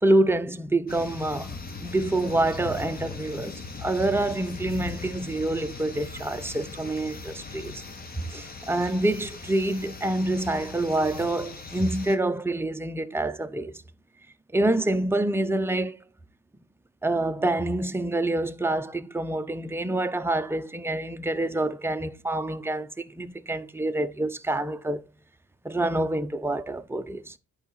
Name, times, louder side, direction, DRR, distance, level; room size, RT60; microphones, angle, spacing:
voice 1, 0.0-1.5 1.8-3.5 3.8-7.8 8.1-13.8 14.5-16.0 17.0-25.0 25.6-27.3, right 2 dB, 10° right, 0.7 m, -27 dB
sound 1, 0.9-12.2, left 4 dB, 30° left, 1.4 m, -39 dB
10.0 x 4.8 x 4.0 m
cardioid pair, 90°, 30 cm